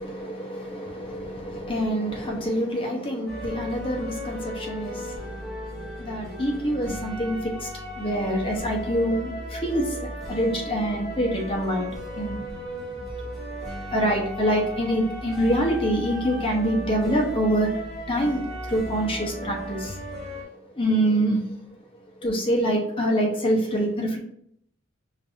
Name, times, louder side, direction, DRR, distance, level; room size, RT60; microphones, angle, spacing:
voice 1, 0.0-12.4 13.9-17.8 18.1-20.0 20.7-21.4 22.2-24.2, equal, 25° left, -1 dB, 0.8 m, -26 dB
sound 1, 3.3-20.4, equal, ahead, 1.1 m, -36 dB
5.2 x 2.6 x 2.6 m, 0.69 s
head